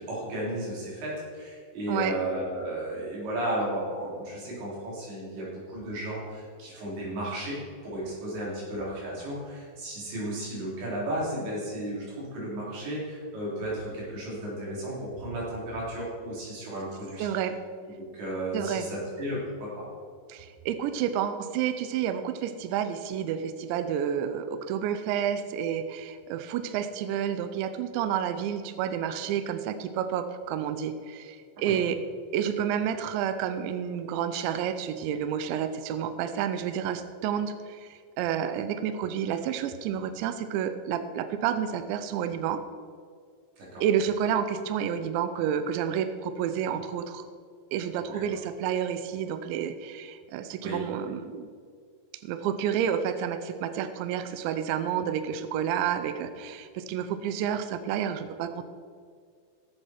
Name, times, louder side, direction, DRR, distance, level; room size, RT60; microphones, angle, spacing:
voice 1, 0.0-17.3 18.0-19.9 31.6-31.8 43.6-43.8 48.1-48.2 50.6-50.8, right 1 dB, 60° right, -5 dB, 5.7 m, -34 dB
voice 2, 17.2-17.6 18.5-18.9 20.3-32.0 32.3-42.6 43.8-47.3 47.7-51.5 52.2-58.7, right 9 dB, 85° right, 10 dB, 2.6 m, -30 dB
17.5 x 7.9 x 4.5 m, 2.1 s
omnidirectional pair, 5.8 m